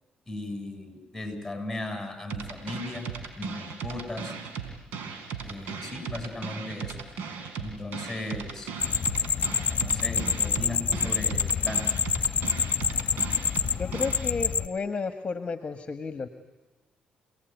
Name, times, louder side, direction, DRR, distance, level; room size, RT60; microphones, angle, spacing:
voice 1, 0.3-3.1 3.3-4.3 5.4-6.9 7.6-8.7 9.8-11.9, left 2 dB, 5° left, 6 dB, 7.6 m, -36 dB
sound 1, 2.3-14.3, right 6 dB, 85° right, 4.1 m, -37 dB
sound 2, 8.8-14.7, left 7 dB, 55° left, 1.1 m, -27 dB
voice 2, 13.8-16.3, left 4 dB, 35° left, 9 dB, 1.7 m, -32 dB
29.0 x 19.0 x 9.5 m, 1.2 s
cardioid pair, 75°, 3 cm